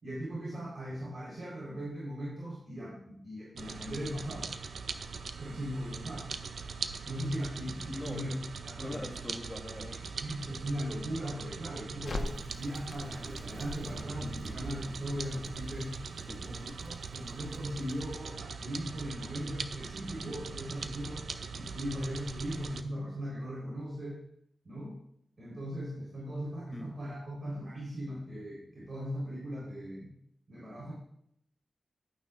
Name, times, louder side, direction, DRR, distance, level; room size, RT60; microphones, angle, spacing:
voice 1, 0.0-4.5 5.4-6.3 7.1-8.3 8.6-9.1 10.0-15.9 16.4-21.3 21.5-24.2 24.6-24.9 25.4-30.1 30.5-30.9, equal, 50° right, -7 dB, 4.1 m, -38 dB
sound 1, 3.6-22.8, right 5 dB, 90° right, 0.5 m, -41 dB
voice 2, 7.9-8.5 8.8-10.0 16.2-16.4 26.7-26.9, left 1 dB, 15° left, 1 dB, 1.8 m, -42 dB
Crackle, 12.0-18.2, left 2 dB, 65° left, 1.2 m, -44 dB
12.5 x 9.4 x 2.5 m, 0.74 s
wide cardioid pair, 75°, 0 cm